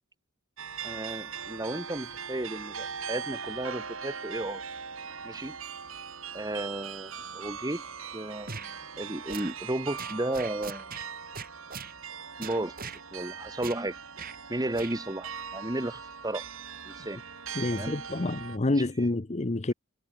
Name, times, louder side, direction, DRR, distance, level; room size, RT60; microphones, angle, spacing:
sound 1, 0.6-18.6, right 6 dB, 75° right, 4.3 m, -40 dB
voice 1, 0.8-4.6 5.2-5.6 6.3-7.8 8.1-10.9 12.4-14.0 14.5-16.4 16.8-17.2 17.7-18.0 18.7-18.8, right 1 dB, 20° right, 1.8 m, -34 dB
sound 2, 8.5-8.7 9.3-9.5 10.0-11.1 11.3-11.9 12.4-13.0 13.6-13.8 14.2-14.4 14.7-15.0, right 5 dB, 45° right, 4.1 m, -40 dB
voice 2, 17.5-19.7, left 2 dB, 35° left, 0.8 m, -28 dB
head